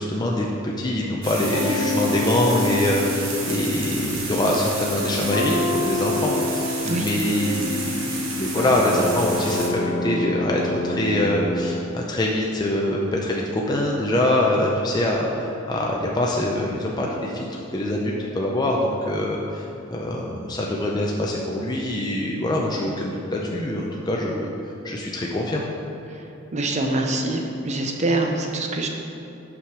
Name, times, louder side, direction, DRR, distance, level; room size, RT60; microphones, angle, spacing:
voice 1, 0.0-25.7, left 1 dB, 20° left, -2 dB, 0.5 m, -24 dB
sound 1, 1.2-9.7, right 3 dB, 75° right, 1.3 m, -32 dB
sound 2, 1.5-11.7, left 2 dB, 70° left, 0.9 m, -27 dB
voice 2, 26.5-28.9, right 2 dB, 35° right, 2 dB, 0.6 m, -25 dB
5.9 x 4.9 x 6.0 m, 2.9 s
head